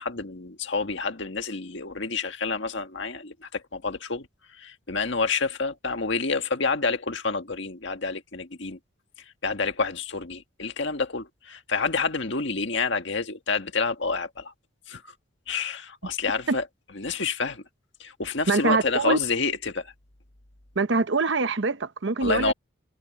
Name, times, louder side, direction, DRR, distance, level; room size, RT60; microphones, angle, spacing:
voice 1, 0.0-4.3 4.5-8.8 9.4-14.5 14.9-15.1 15.5-16.7 16.9-17.6 18.0-19.9 22.2-22.5, left 4 dB, 60° left, 1.8 m, -28 dB
voice 2, 18.5-19.2 20.8-22.5, right 3 dB, 60° right, 0.8 m, -24 dB
open air
head